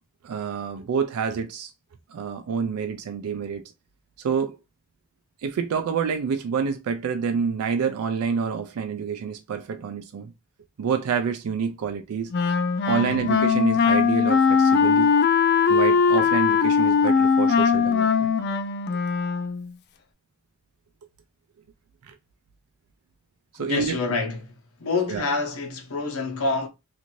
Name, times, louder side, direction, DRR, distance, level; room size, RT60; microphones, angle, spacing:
voice 1, 0.2-1.7 2.1-3.6 4.2-4.6 5.4-10.3 10.8-12.3 12.8-15.1 15.7-18.3 22.0-22.1 23.5-24.0 25.1-25.2, right 6 dB, 85° right, 0.4 m, -27 dB
Wind instrument woodwind instrument, 12.3-19.7, left 6 dB, 50° left, 0.3 m, -20 dB
voice 2, 12.8-13.3 23.6-24.5 24.8-26.7, left 3 dB, 75° left, 0.8 m, -27 dB
2.6 x 2.5 x 2.9 m
head